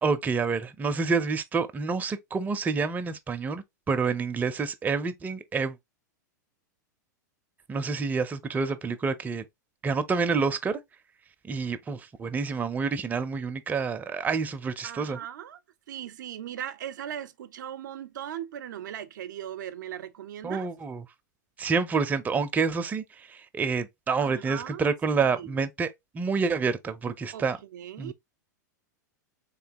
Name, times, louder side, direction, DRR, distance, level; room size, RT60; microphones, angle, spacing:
voice 1, 0.0-5.8 7.7-9.4 9.8-10.8 11.4-15.2 20.4-21.0 21.6-27.6 28.0-28.1, right 5 dB, 15° right, 0.5 m, -28 dB
voice 2, 14.8-15.6 15.9-20.7 24.2-24.9 25.2-25.5 27.3-28.1, right 10 dB, 75° right, 0.4 m, -39 dB
3.3 x 3.0 x 2.8 m
hypercardioid pair, 110°, 10 cm